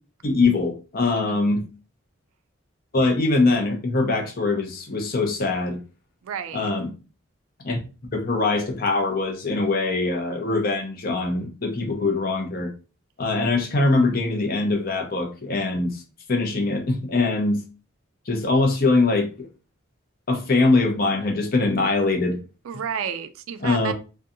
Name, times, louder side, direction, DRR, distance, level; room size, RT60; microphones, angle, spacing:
voice 1, 0.2-1.6 2.9-5.8 6.5-6.9 7.6-7.8 8.1-12.7 13.2-16.0 16.3-17.6 18.3-19.5 20.3-22.4 23.6-23.9, left 3 dB, 45° left, 4 dB, 0.5 m, -22 dB
voice 2, 1.1-1.7 6.2-6.7 22.6-23.9, right 7 dB, 80° right, 10 dB, 0.3 m, -32 dB
2.5 x 2.2 x 2.6 m, 0.33 s
head